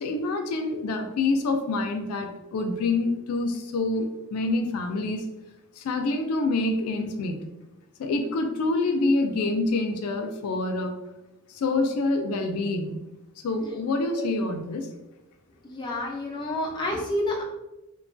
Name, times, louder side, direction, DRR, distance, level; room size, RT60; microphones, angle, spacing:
voice 1, 0.0-5.2 5.8-7.4 8.0-10.9 11.5-13.0 13.4-14.9, left 2 dB, 85° left, 4 dB, 0.4 m, -26 dB
voice 2, 15.6-17.4, left 1 dB, 20° left, -2 dB, 0.5 m, -29 dB
2.9 x 2.3 x 2.5 m, 0.97 s
head